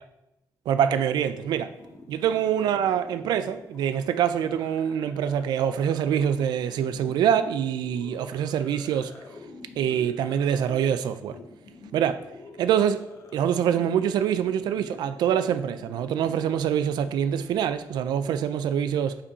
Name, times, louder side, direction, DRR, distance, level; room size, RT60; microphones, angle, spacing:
voice 1, 0.7-1.7 2.1-9.1 9.8-11.4 11.9-12.2 12.6-13.1 13.3-19.2, right 9 dB, 90° right, 0.4 m, -25 dB
sound 1, 1.2-18.4, left 3 dB, 45° left, 0.9 m, -47 dB
5.7 x 5.0 x 4.7 m
cardioid pair, 175°, 7 cm